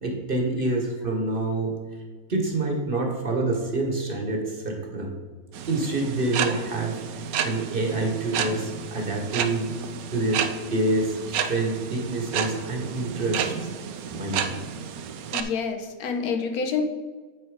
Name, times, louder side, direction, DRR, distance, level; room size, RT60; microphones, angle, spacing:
voice 1, 0.0-1.7 2.3-5.1 5.7-7.0 7.4-9.7 10.1-13.5 14.1-14.6, right 2 dB, 40° right, 1 dB, 1.3 m, -27 dB
sound 1, 5.5-15.4, right 7 dB, 75° right, 1.1 m, -31 dB
voice 2, 15.3-16.8, left 6 dB, 85° left, 5 dB, 1.4 m, -28 dB
9.5 x 4.3 x 4.9 m, 1.4 s
omnidirectional pair, 1.5 m